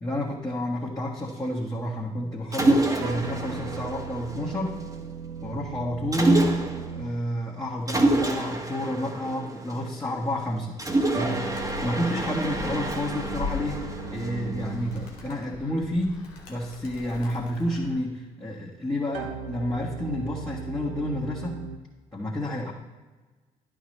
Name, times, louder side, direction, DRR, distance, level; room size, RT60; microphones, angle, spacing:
voice 1, 0.0-4.8 5.4-6.6 6.9-10.8 11.1-13.8 14.1-16.2 16.5-21.6 22.1-22.7, equal, 20° left, -6 dB, 1.6 m, -29 dB
Mechanisms, 2.5-4.9 6.1-7.0 7.9-10.2 10.8-15.0, right 2 dB, 20° right, 1.3 m, -28 dB
sound 1, 3.0-7.7 11.1-15.4 19.1-21.8, right 6 dB, 85° right, 0.5 m, -37 dB
Animal, 11.5-18.0, left 4 dB, 90° left, 0.9 m, -40 dB
11.0 x 4.9 x 3.3 m, 1.3 s
hypercardioid pair, 45°, 19 cm